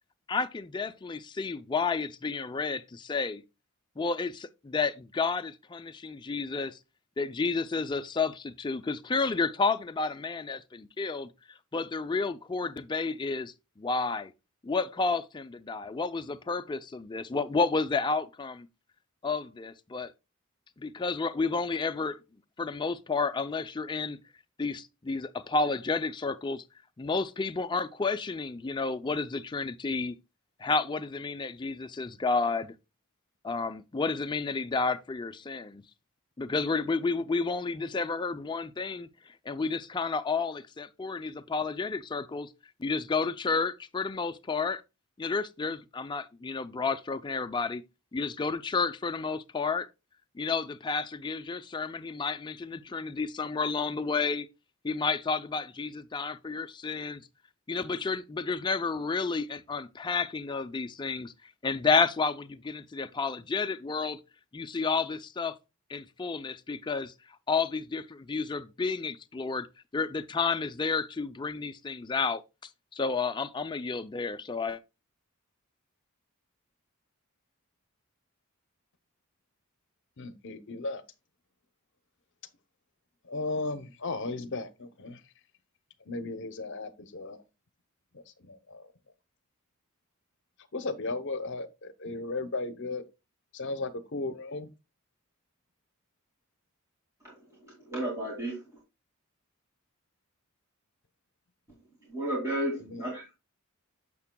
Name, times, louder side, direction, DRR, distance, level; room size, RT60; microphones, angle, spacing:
voice 1, 0.3-3.4 4.0-6.8 7.2-11.3 11.7-14.3 14.6-18.7 19.2-20.1 20.8-22.2 22.6-24.2 24.6-26.6 27.0-30.2 30.6-32.7 33.4-35.8 36.4-39.1 39.5-42.5 42.8-44.8 45.2-47.8 48.1-49.9 50.4-54.5 54.8-57.3 57.7-61.3 61.6-64.2 64.5-65.5 65.9-67.1 67.5-69.7 69.9-72.4 72.9-74.8, left 4 dB, 20° left, 0.4 m, -31 dB
voice 2, 80.2-81.0 83.2-85.2 86.1-87.4 88.1-88.8 90.7-93.0 93.5-94.7 102.8-103.1, left 3 dB, 55° left, 0.8 m, -35 dB
voice 3, 97.6-98.6 102.1-103.3, right 1 dB, 15° right, 2.3 m, -33 dB
8.4 x 6.8 x 2.2 m
head